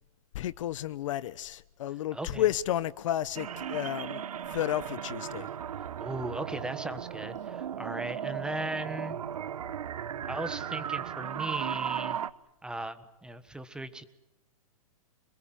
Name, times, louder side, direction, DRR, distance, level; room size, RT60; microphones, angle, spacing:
voice 1, 0.3-4.2 4.5-5.5, left 12 dB, 60° left, 1.0 m, -32 dB
voice 2, 2.1-2.5 5.8-9.2 10.3-12.2 12.6-14.1, right 2 dB, 5° right, 1.4 m, -37 dB
sound 1, 3.4-12.3, right 9 dB, 80° right, 1.1 m, -36 dB
27.5 x 21.5 x 9.3 m
hypercardioid pair, 140°, 19 cm